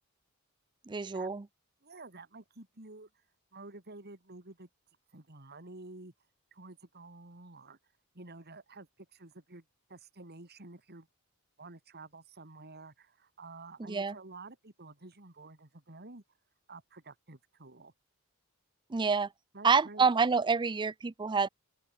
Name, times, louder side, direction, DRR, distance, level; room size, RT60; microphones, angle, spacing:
voice 1, 0.9-1.4 13.9-14.1 18.9-19.3 19.6-21.5, right 5 dB, 20° right, 0.4 m, -27 dB
voice 2, 1.8-3.1 3.5-4.7 5.1-6.1 6.5-7.8 8.1-9.6 9.9-11.1 11.6-16.2 16.7-17.9 19.5-20.1, right 3 dB, 45° right, 3.1 m, -50 dB
open air
head